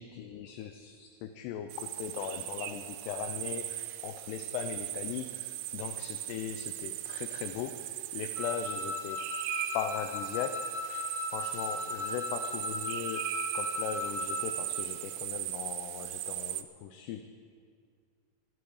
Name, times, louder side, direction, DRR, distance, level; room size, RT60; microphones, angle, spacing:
voice 1, 0.0-9.3 9.7-10.7 11.3-13.3 13.5-17.2, left 9 dB, 80° left, 7 dB, 2.5 m, -39 dB
sound 1, 1.7-16.6, right 15 dB, 80° right, 2.7 m, -38 dB
Wind instrument woodwind instrument, 8.3-14.6, left 3 dB, 60° right, 1.9 m, -37 dB
24.5 x 9.6 x 4.9 m, 2.1 s
omnidirectional pair, 5.2 m